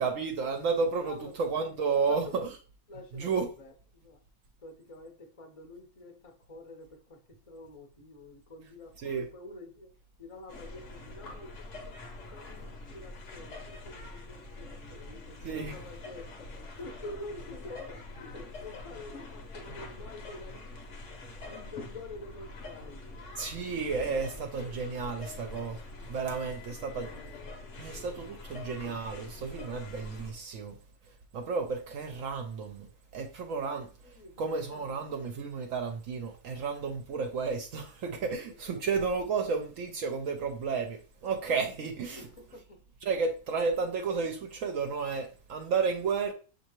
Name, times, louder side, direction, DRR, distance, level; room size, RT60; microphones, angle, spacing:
voice 1, 0.0-2.6 3.1-3.5 9.0-9.2 15.4-15.8 23.4-25.8 26.1-27.1 27.8-30.8 31.3-32.9 33.1-33.9 34.4-42.3 43.0-46.3, right 5 dB, 65° right, 0.9 m, -32 dB
voice 2, 1.0-1.4 1.9-2.4 2.9-3.3 3.6-4.2 4.6-7.2 7.5-9.9 10.2-11.7 12.2-16.5 16.8-20.8 21.2-23.2 24.3-24.7 26.9-28.3 34.0-35.0 38.2-38.8 42.1-42.8, left 2 dB, 35° left, 0.6 m, -47 dB
sound 1, 10.5-30.3, left 2 dB, 60° left, 1.0 m, -45 dB
6.4 x 2.8 x 2.9 m
omnidirectional pair, 1.6 m